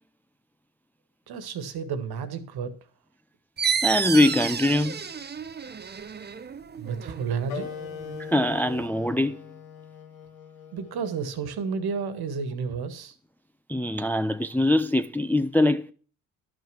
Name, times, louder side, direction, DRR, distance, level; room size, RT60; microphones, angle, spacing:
voice 1, 1.3-2.7 6.7-7.7 10.7-13.1, right 5 dB, 60° right, 1.7 m, -31 dB
sound 1, 3.6-8.8, right 6 dB, 25° right, 0.8 m, -31 dB
voice 2, 3.8-5.0 8.2-9.4 13.7-15.9, left 1 dB, 5° left, 0.5 m, -23 dB
Wind instrument woodwind instrument, 7.5-12.6, left 8 dB, 80° left, 2.1 m, -42 dB
11.5 x 6.4 x 6.1 m
hypercardioid pair, 60°, 43 cm